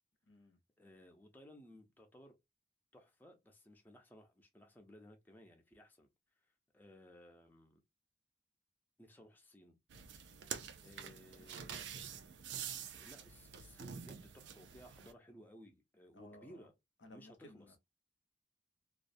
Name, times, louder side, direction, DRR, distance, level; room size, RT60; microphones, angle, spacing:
voice 1, 0.3-0.6 11.0-12.0 16.1-16.7 17.0-17.8, left 1 dB, 80° left, 0.7 m, -59 dB
voice 2, 0.8-2.3 2.9-6.1 6.4-7.8 9.0-9.8 10.4-11.8 12.9-16.7 17.1-17.8, equal, 10° left, 0.5 m, -59 dB
sound 1, 9.9-15.1, right 8 dB, 75° right, 0.4 m, -47 dB
2.4 x 2.1 x 2.5 m
head